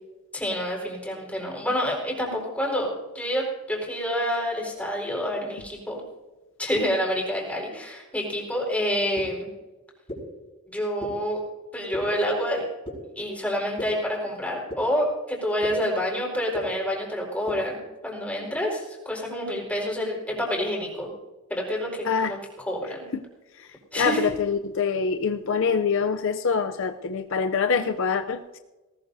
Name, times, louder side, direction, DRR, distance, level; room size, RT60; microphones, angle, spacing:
voice 1, 0.3-2.9 3.1-6.0 6.6-9.5 10.7-11.4 11.7-12.6 13.2-17.8 18.0-21.1 21.5-23.0 23.9-24.3, equal, 5° left, -3 dB, 4.5 m, -28 dB
sound 1, 9.2-9.3 10.1-10.2 11.0-11.1 11.9-12.0 12.8-12.9 13.8-13.9 14.7-14.8 15.6-15.7 16.5-16.6 17.5-17.6, left 1 dB, 25° left, 4.5 m, -33 dB
voice 2, 22.0-22.4 23.6-23.7 23.9-28.6, left 5 dB, 60° left, 7 dB, 0.5 m, -25 dB
19.0 x 18.5 x 2.7 m, 1.2 s
head